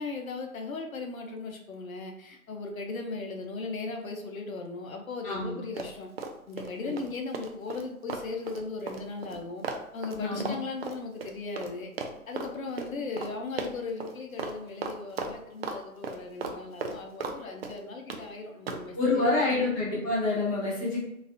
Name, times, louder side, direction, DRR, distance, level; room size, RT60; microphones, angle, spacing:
voice 1, 0.0-6.1 6.5-9.6 9.9-11.9 12.3-19.7, left 3 dB, 70° left, 3 dB, 0.7 m, -37 dB
voice 2, 5.2-5.6 6.8-7.0 10.2-10.5 18.9-21.0, left 2 dB, 15° left, -5 dB, 0.8 m, -27 dB
Run, 5.8-6.7 7.0-11.7 12.0-12.5 12.8-12.9 13.2-13.3 13.6-14.1 14.4-14.6 14.8-15.8 16.0-17.4 17.6-18.2 18.7-18.9, right 4 dB, 45° right, 0.4 m, -36 dB
4.0 x 2.5 x 2.5 m, 0.79 s
figure-of-eight pair, 130°, 43 cm